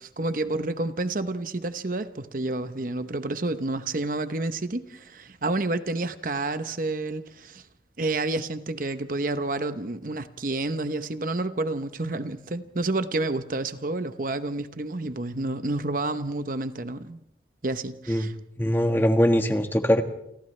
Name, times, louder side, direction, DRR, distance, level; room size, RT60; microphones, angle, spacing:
voice 1, 0.0-7.6 8.0-17.2 17.6-18.3, right 2 dB, 50° right, 0.9 m, -29 dB
voice 2, 18.6-20.0, equal, 10° left, 1.6 m, -21 dB
29.0 x 28.5 x 3.3 m
head